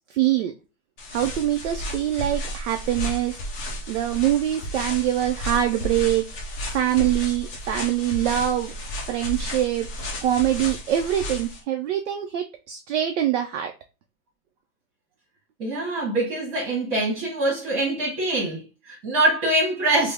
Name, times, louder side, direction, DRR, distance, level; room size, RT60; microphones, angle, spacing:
voice 1, 0.1-0.5 1.1-3.4 3.9-6.3 6.7-8.7 9.1-9.9 10.2-13.7, right 12 dB, 50° right, 0.5 m, -24 dB
sound 1, 1.0-11.6, equal, 15° left, 0.5 m, -33 dB
voice 2, 15.6-20.1, right 2 dB, 35° right, 1.4 m, -24 dB
3.3 x 2.0 x 3.4 m
hypercardioid pair, 150°, 45 cm